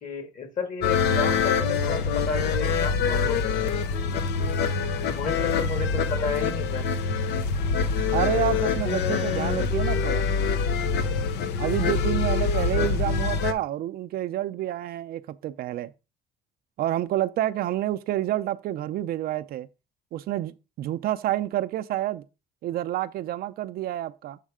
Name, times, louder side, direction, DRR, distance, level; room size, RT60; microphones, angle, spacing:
voice 1, 0.0-4.2 5.0-6.8, left 4 dB, 50° left, 1.9 m, -33 dB
sound 1, 0.8-13.5, left 5 dB, 80° left, 0.7 m, -25 dB
voice 2, 8.1-10.3 11.6-15.9 16.8-19.7 20.1-22.2 22.6-24.4, right 13 dB, 65° right, 0.5 m, -28 dB
7.4 x 3.3 x 4.9 m
cardioid pair, 110°, 17 cm